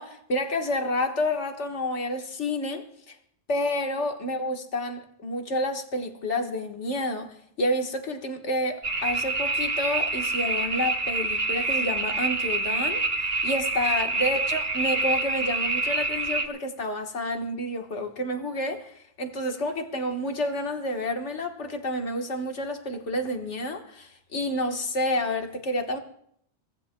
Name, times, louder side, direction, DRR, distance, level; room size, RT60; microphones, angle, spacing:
voice 1, 0.0-3.2 3.5-13.0 13.4-26.0, left 1 dB, 85° left, 1.7 m, -29 dB
sound 1, 8.8-16.5, right 2 dB, 45° right, 1.5 m, -27 dB
24.0 x 17.5 x 2.2 m
omnidirectional pair, 1.2 m